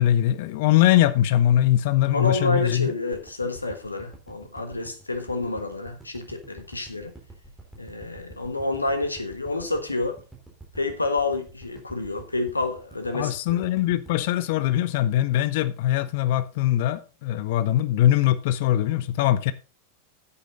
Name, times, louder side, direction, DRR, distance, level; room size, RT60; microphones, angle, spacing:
voice 1, 0.0-2.9 13.1-19.5, left 12 dB, 50° left, 0.8 m, -22 dB
voice 2, 2.1-7.1 7.8-10.2 10.7-13.4, left 2 dB, 80° left, 1.2 m, -28 dB
sound 1, 3.1-15.4 15.9-16.0, right 2 dB, 5° right, 3.6 m, -47 dB
10.0 x 8.3 x 3.9 m
figure-of-eight pair, 90°, 0 cm